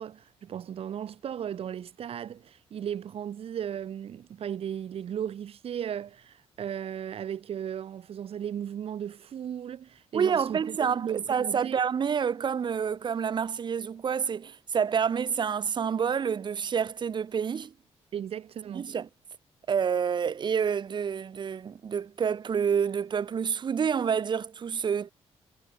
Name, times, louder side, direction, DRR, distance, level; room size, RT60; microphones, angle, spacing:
voice 1, 0.0-11.8 18.1-18.9, right 9 dB, 60° right, 4.8 m, -36 dB
voice 2, 10.1-17.7 18.7-19.1 19.7-25.1, right 7 dB, 45° right, 2.4 m, -28 dB
cardioid pair, 135°, 11 cm